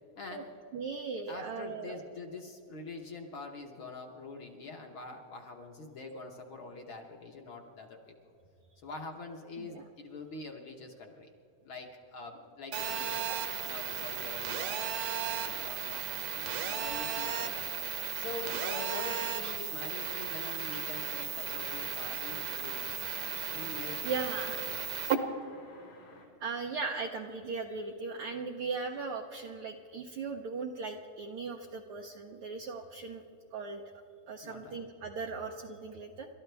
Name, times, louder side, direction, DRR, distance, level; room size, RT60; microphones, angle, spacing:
voice 1, 0.2-0.5 1.3-8.3 8.8-11.3 11.6-13.3 13.6-14.8 15.3-16.0 16.3-17.7 18.1-23.0 23.5-24.8 34.4-34.8, left 3 dB, 55° left, 2 dB, 1.5 m, -45 dB
voice 2, 0.7-2.0 9.6-9.8 13.3-13.4 24.0-24.7 26.4-33.2 33.5-33.8 34.3-36.3, right 4 dB, 80° right, 1 dB, 1.2 m, -38 dB
Telephone, 12.7-25.1, right 8 dB, 65° right, 1.8 m, -35 dB
sound 1, 20.6-26.2, left 2 dB, 85° left, 5.6 m, -55 dB
29.5 x 13.0 x 3.4 m, 2.6 s
omnidirectional pair, 3.6 m